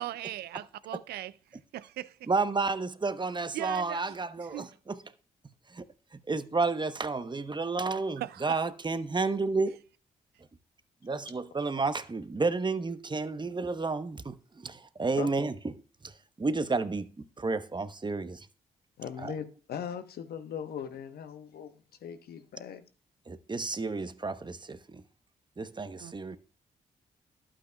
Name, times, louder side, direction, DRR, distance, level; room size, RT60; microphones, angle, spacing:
voice 1, 0.0-2.3 3.5-4.1 4.5-4.7 8.2-8.7 26.0-26.1, right 14 dB, 75° right, 0.5 m, -39 dB
voice 2, 2.3-5.0 5.7-5.9 6.1-9.8 11.0-15.7 16.0-18.5 19.2-19.3 23.3-25.0 25.6-26.4, right 3 dB, 30° right, 0.9 m, -31 dB
voice 3, 19.0-21.7 22.0-22.8, left 8 dB, 70° left, 1.0 m, -39 dB
11.5 x 8.7 x 2.3 m
hypercardioid pair, 45°, 17 cm